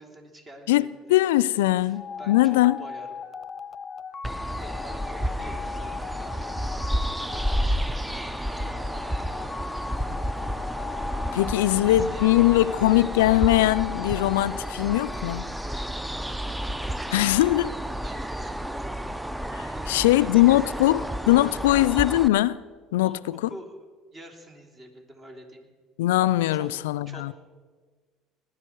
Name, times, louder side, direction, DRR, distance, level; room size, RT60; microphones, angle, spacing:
voice 1, 0.0-1.1 1.8-3.2 4.4-6.5 7.3-8.6 8.9-9.8 11.6-13.0 15.6-16.1 16.6-17.6 18.0-18.8 19.7-21.9 23.0-23.8 24.1-25.6 26.5-26.7 27.1-27.3, right 1 dB, 35° right, 3.2 m, -47 dB
voice 2, 0.7-2.8 11.3-15.6 17.1-17.7 19.5-21.0 21.3-22.6 22.9-23.4 26.0-27.3, left 16 dB, 80° left, 0.3 m, -21 dB
sound 1, 1.9-16.4, left 6 dB, 35° left, 0.8 m, -39 dB
sound 2, 4.2-22.3, equal, 10° right, 0.6 m, -31 dB
19.5 x 11.0 x 4.6 m
hypercardioid pair, 70°, 0 cm